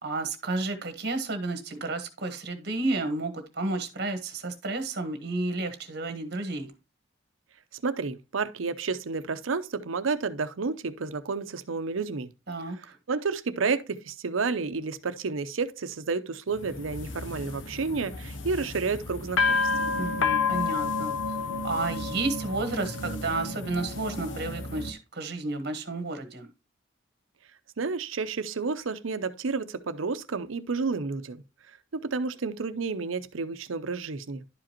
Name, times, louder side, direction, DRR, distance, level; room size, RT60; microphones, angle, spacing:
voice 1, 0.0-6.7 12.5-12.8 20.0-21.1 21.6-26.5, right 2 dB, 55° right, 1.4 m, -31 dB
voice 2, 7.7-12.3 13.1-19.6 27.8-31.4 31.9-34.4, right 4 dB, 90° right, 0.7 m, -30 dB
sound 1, 16.5-24.9, left 4 dB, 70° left, 0.8 m, -30 dB
11.0 x 5.0 x 2.9 m
head